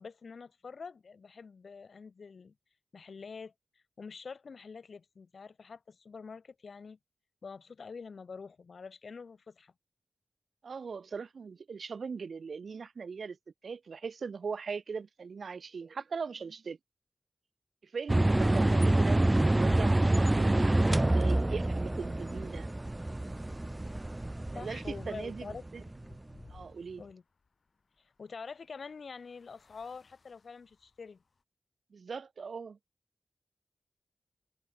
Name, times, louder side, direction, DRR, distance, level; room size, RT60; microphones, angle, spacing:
voice 1, 0.0-2.5 2.9-3.5 4.0-7.0 7.4-9.7 18.1-18.8 24.5-26.2 27.0-27.2 28.0-31.2, left 5 dB, 80° left, 1.3 m, -46 dB
voice 2, 10.6-13.4 13.6-16.8 17.8-22.7 24.5-25.8 26.5-27.0 31.9-32.8, right 5 dB, 85° right, 1.7 m, -40 dB
sound 1, 18.1-26.1, right 1 dB, 20° right, 0.5 m, -27 dB
sound 2, 21.9-31.4, left 4 dB, 60° left, 5.6 m, -63 dB
wide cardioid pair, 115°, 0 cm